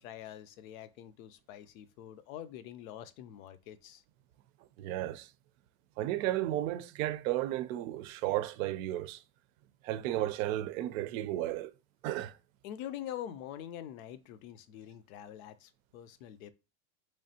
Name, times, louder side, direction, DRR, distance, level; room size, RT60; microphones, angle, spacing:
voice 1, 0.0-4.0 12.6-16.5, left 11 dB, 85° left, 0.5 m, -45 dB
voice 2, 4.8-5.3 6.0-9.2 9.8-11.7 12.0-12.4, right 14 dB, 80° right, 0.5 m, -33 dB
3.6 x 3.1 x 2.7 m
supercardioid pair, 130°, 39 cm